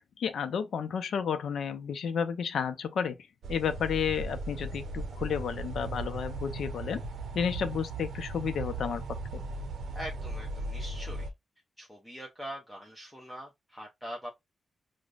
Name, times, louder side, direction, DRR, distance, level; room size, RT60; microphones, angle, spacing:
voice 1, 0.2-3.2 3.5-7.0 7.3-9.0 9.3-9.4, left 7 dB, 75° left, 0.4 m, -31 dB
sound 1, 3.4-11.3, right 2 dB, 75° right, 0.6 m, -37 dB
voice 2, 9.9-11.3 11.8-14.3, equal, 5° left, 0.6 m, -43 dB
4.9 x 2.1 x 2.4 m
cardioid pair, 105°, 0 cm